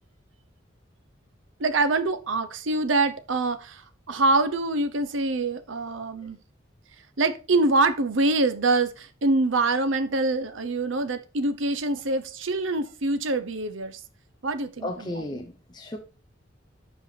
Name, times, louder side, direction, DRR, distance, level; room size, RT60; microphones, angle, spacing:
voice 1, 1.6-6.4 7.2-14.0 14.4-14.9 15.2-15.3, right 2 dB, 75° right, 10 dB, 0.8 m, -25 dB
voice 2, 14.8-16.0, left 1 dB, 20° left, 4 dB, 0.7 m, -34 dB
7.9 x 5.0 x 4.1 m, 0.34 s
head